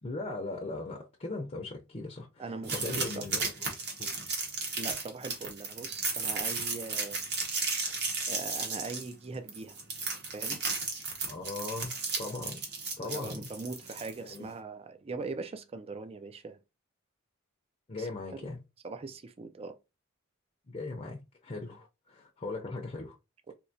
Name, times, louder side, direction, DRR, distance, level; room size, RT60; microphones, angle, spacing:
voice 1, 0.0-3.7 4.0-4.1 11.3-12.6 13.0-13.5 14.2-14.5 17.9-18.6 20.7-23.2, left 3 dB, 30° left, 0.6 m, -39 dB
voice 2, 2.4-3.3 4.8-7.2 8.3-9.8 10.3-10.6 13.0-16.6 18.0-18.5 18.8-19.8 23.5-23.6, right 4 dB, 30° right, 0.4 m, -41 dB
sound 1, 2.6-14.4, right 4 dB, 55° right, 1.2 m, -34 dB
4.4 x 2.8 x 2.7 m
head